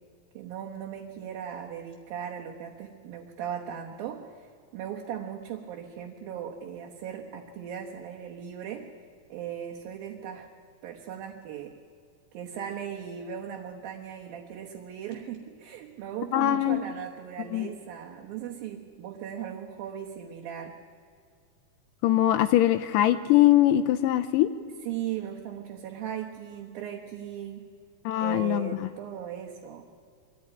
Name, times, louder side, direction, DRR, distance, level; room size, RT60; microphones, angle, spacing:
voice 1, 0.3-8.9 9.3-10.5 10.8-11.7 12.3-20.8 24.8-27.7 28.2-29.8, right 9 dB, 70° right, 0 dB, 2.8 m, -38 dB
voice 2, 16.3-16.8 17.5-17.7 22.0-24.5 28.1-28.7, left 14 dB, 85° left, 8 dB, 1.9 m, -22 dB
23.5 x 14.0 x 9.6 m, 2.2 s
omnidirectional pair, 4.6 m